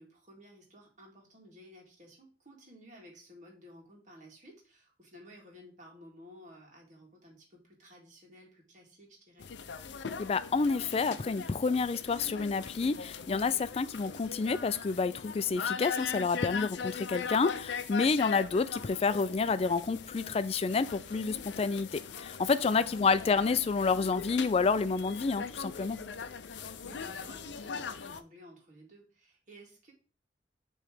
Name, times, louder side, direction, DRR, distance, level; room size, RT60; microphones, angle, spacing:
voice 1, 0.0-9.5 22.5-23.0 26.6-29.9, equal, 45° right, 0 dB, 2.0 m, -54 dB
sound 1, 9.4-28.2, left 6 dB, 85° left, 0.5 m, -40 dB
voice 2, 10.2-26.0, left 4 dB, 35° left, 14 dB, 0.3 m, -29 dB
6.6 x 3.2 x 5.0 m, 0.37 s
head